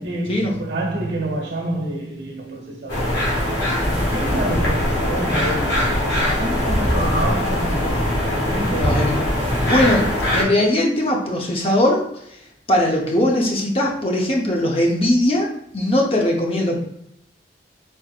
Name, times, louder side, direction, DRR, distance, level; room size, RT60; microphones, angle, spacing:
voice 1, 0.0-3.2 3.8-9.2, right 1 dB, 80° right, 1.1 m, -28 dB
sound 1, 2.9-10.4, left 1 dB, 85° left, 1.5 m, -21 dB
voice 2, 8.7-9.2 9.4-12.0 12.7-15.5 15.7-16.8, left 1 dB, 30° left, 0.7 m, -20 dB
4.4 x 3.5 x 2.4 m
head